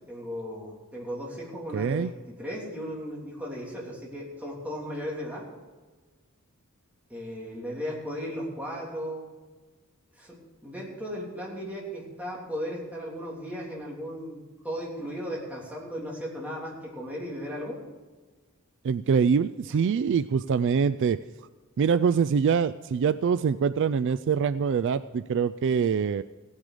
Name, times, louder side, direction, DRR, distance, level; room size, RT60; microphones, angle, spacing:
voice 1, 0.1-5.5 7.1-9.2 10.2-17.8 19.7-19.8, equal, 5° right, -4 dB, 3.2 m, -36 dB
voice 2, 1.7-2.1 18.8-21.2 21.8-26.2, right 6 dB, 55° right, 14 dB, 0.3 m, -24 dB
16.5 x 9.8 x 5.0 m, 1.3 s
head